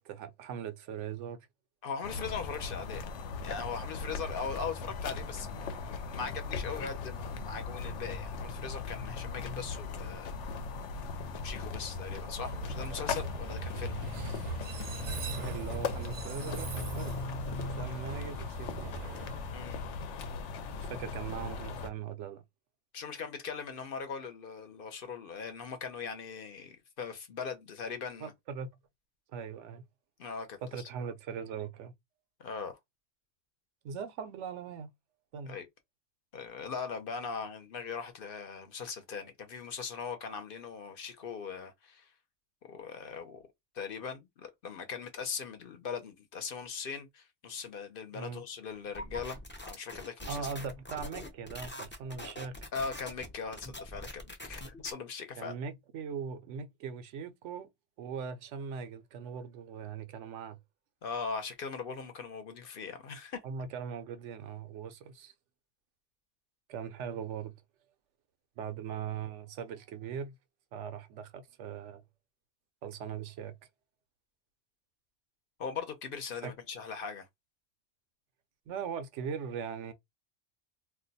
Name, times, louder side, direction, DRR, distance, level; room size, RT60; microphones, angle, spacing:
voice 1, 0.0-1.5 15.4-17.2 17.5-19.0 20.8-22.4 28.2-28.7 29.3-29.8 30.6-31.9 33.8-34.9 35.3-35.6 48.1-48.4 50.3-52.6 55.4-57.7 58.0-60.6 63.4-65.3 66.7-67.5 68.6-70.4 70.7-72.0 72.8-73.5 76.4-76.5 78.7-79.9, right 7 dB, 90° right, 0.9 m, -40 dB
voice 2, 1.8-3.0 3.4-10.4 11.4-13.9 19.5-20.1 22.9-28.3 30.2-30.9 32.4-32.8 35.5-35.7 36.3-42.1 42.6-43.5 43.7-50.5 52.7-55.5 61.0-63.4 75.6-77.3, left 5 dB, 55° left, 0.8 m, -40 dB
sound 1, 2.0-21.9, left 4 dB, 85° left, 0.9 m, -38 dB
Train, 12.3-20.3, right 5 dB, 55° right, 0.5 m, -41 dB
sound 2, 48.9-54.9, left 1 dB, 15° left, 0.4 m, -44 dB
2.5 x 2.2 x 3.9 m
omnidirectional pair, 1.2 m